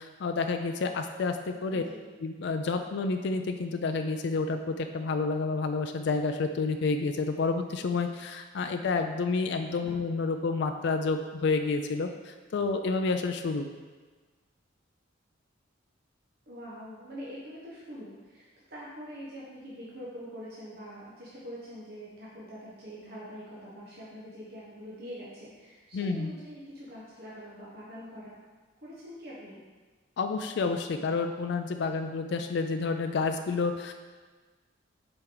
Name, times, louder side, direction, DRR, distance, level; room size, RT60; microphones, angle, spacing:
voice 1, 0.0-1.8 2.2-13.7 25.9-26.3 30.2-33.9, left 4 dB, 60° left, 6 dB, 0.4 m, -29 dB
voice 2, 1.7-2.0 9.8-9.9 16.5-28.3 28.8-29.6, equal, 50° right, -7 dB, 1.1 m, -44 dB
7.8 x 4.4 x 3.9 m, 1.4 s
head